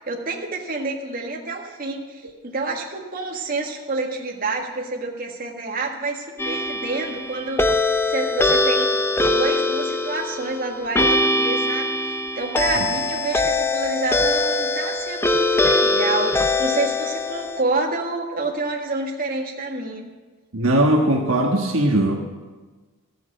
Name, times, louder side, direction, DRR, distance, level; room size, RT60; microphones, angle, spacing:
voice 1, 0.0-8.9 9.2-20.0, right 3 dB, 40° right, 0 dB, 1.7 m, -28 dB
sound 1, 6.4-17.6, left 2 dB, 10° left, 0.5 m, -22 dB
voice 2, 20.5-22.1, right 1 dB, 65° right, 1 dB, 1.4 m, -19 dB
14.0 x 7.6 x 8.9 m, 1.3 s
head